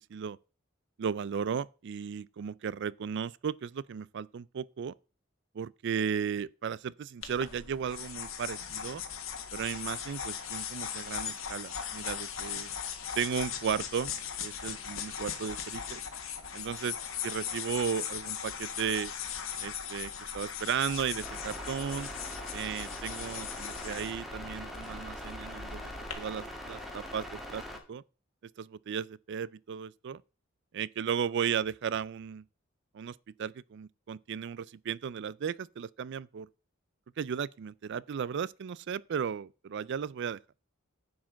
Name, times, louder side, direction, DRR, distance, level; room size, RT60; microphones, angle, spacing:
voice 1, 1.0-4.9 5.5-9.0 9.5-12.7 13.2-14.1 14.4-16.0 16.5-16.9 17.2-19.1 19.6-22.1 22.5-25.9 26.2-27.6 27.9-28.0 28.6-30.2 30.7-32.4 32.9-36.5 37.2-40.4, right 7 dB, 60° right, 0.4 m, -35 dB
sound 1, 7.2-26.1, left 8 dB, 80° left, 1.7 m, -39 dB
sound 2, 21.2-27.8, equal, ahead, 1.7 m, -42 dB
10.0 x 4.8 x 7.3 m
head